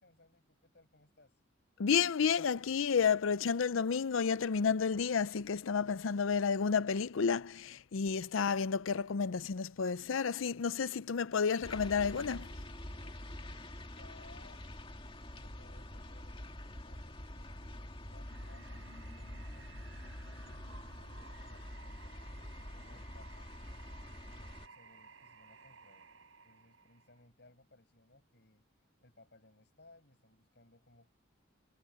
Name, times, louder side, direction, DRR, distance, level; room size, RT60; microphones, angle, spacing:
voice 1, 0.0-1.4 13.4-23.9 24.2-26.1 26.4-31.1, left 2 dB, 55° left, 7.9 m, -63 dB
voice 2, 1.8-12.5, left 6 dB, 75° left, 0.5 m, -31 dB
sound 1, 11.6-24.7, left 1 dB, 25° left, 2.1 m, -46 dB
sound 2, 18.2-27.2, right 4 dB, 75° right, 5.2 m, -57 dB
head